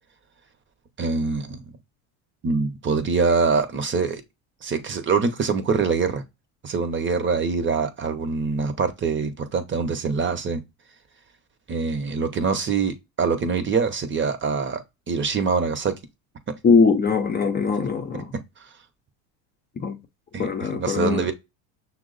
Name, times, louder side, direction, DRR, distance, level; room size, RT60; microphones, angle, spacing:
voice 1, 1.0-1.6 2.4-4.2 4.6-6.2 6.6-10.6 11.7-15.9 18.6-18.7 20.3-21.3, right 5 dB, 30° right, 0.8 m, -24 dB
voice 2, 16.6-18.3 19.8-20.0 20.4-21.3, left 5 dB, 25° left, 0.6 m, -21 dB
5.9 x 2.0 x 3.9 m
supercardioid pair, 90°, 40 cm